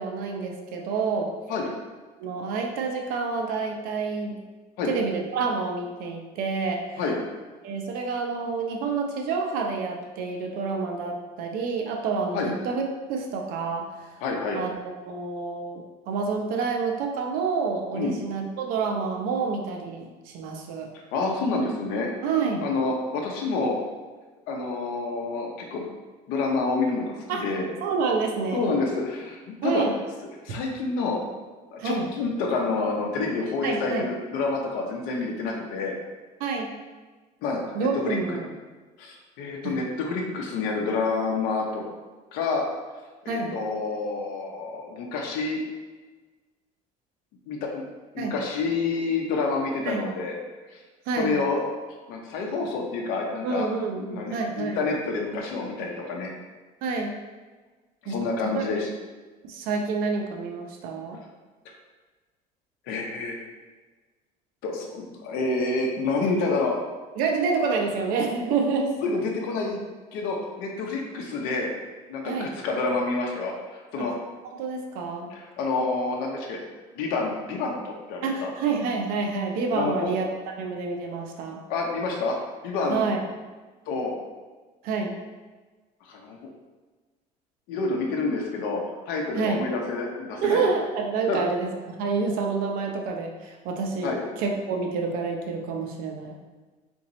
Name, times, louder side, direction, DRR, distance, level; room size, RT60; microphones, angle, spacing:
voice 1, 0.0-1.3 2.2-4.4 4.8-7.0 7.6-12.8 13.1-14.2 14.5-14.7 15.0-20.9 22.2-22.7 27.3-27.4 27.8-28.7 29.6-29.9 31.8-32.1 33.6-34.0 36.4-36.7 37.7-38.4 39.6-39.8 43.3-43.5 48.2-48.3 49.8-50.1 51.1-51.4 53.4-54.8 56.8-57.1 58.1-58.6 59.5-61.2 67.2-68.9 72.2-72.5 74.0-74.1 74.4-75.3 78.2-80.3 80.6-81.6 82.9-83.2 84.8-85.2 89.4-89.6 90.4-94.1 94.4-96.3, right 4 dB, 70° right, 2 dB, 0.7 m, -28 dB
voice 2, 14.2-14.6 17.9-18.2 20.9-22.1 22.6-23.8 24.5-25.9 26.3-27.7 28.5-29.8 30.4-31.2 31.7-35.9 37.4-38.2 39.0-41.8 42.3-42.6 43.2-45.6 47.5-47.8 48.1-50.3 51.2-51.6 52.1-53.7 54.1-56.3 58.0-58.9 62.9-63.3 64.6-66.8 69.0-69.8 70.1-71.7 72.1-74.1 75.3-76.6 77.0-78.5 79.7-80.1 81.7-82.4 82.6-83.0 83.9-84.2 86.0-86.4 87.7-90.7 91.3-91.4 94.0-94.2, left 3 dB, 75° left, 0 dB, 0.8 m, -28 dB
3.9 x 3.5 x 3.0 m, 1.3 s
cardioid pair, 135°, 15 cm